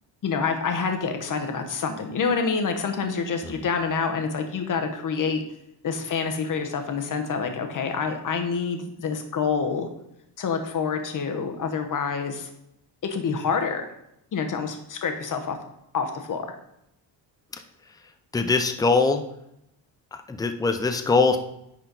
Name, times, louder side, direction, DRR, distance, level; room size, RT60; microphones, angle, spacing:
voice 1, 0.2-5.4 5.8-9.9 10.4-12.5 13.0-13.9 14.3-15.6 15.9-16.5, left 5 dB, 45° left, 6 dB, 1.0 m, -27 dB
voice 2, 18.3-19.2 20.3-21.4, left 4 dB, 10° left, 7 dB, 0.4 m, -21 dB
9.7 x 4.4 x 4.0 m, 0.81 s
cardioid pair, 145°, 44 cm